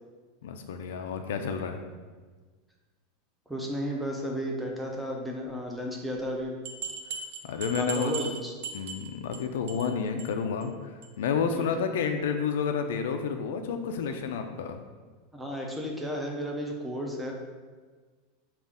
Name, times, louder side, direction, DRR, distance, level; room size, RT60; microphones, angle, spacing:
voice 1, 0.4-1.8 7.4-8.1 8.7-10.7 11.2-14.8, left 6 dB, 80° left, 6 dB, 0.4 m, -30 dB
voice 2, 3.5-6.5 7.8-8.5 11.5-11.7 15.3-17.3, equal, ahead, -1 dB, 0.4 m, -33 dB
sound 1, 6.6-9.4 9.7-9.9 10.2-10.3 10.6-10.7 11.0-11.1, right 5 dB, 70° right, 0.5 m, -38 dB
5.3 x 2.4 x 3.5 m, 1.4 s
supercardioid pair, 175°, 0 cm